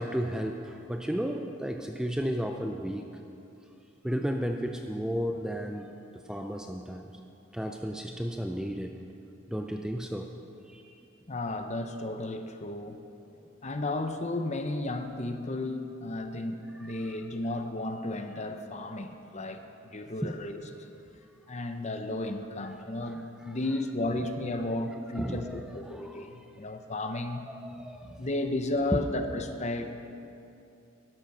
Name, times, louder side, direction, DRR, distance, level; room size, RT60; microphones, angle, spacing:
voice 1, 0.0-3.1 4.0-5.9 6.3-7.0 7.5-9.0 9.5-10.3 10.7-11.0 20.2-20.3 23.0-23.2 25.1-26.2 27.5-28.3, equal, 5° right, 4 dB, 0.4 m, -33 dB
voice 2, 11.3-13.0 13.6-20.9 21.5-27.4 28.2-29.9, left 2 dB, 35° left, 7 dB, 0.8 m, -33 dB
12.5 x 12.0 x 5.6 m, 2.7 s
head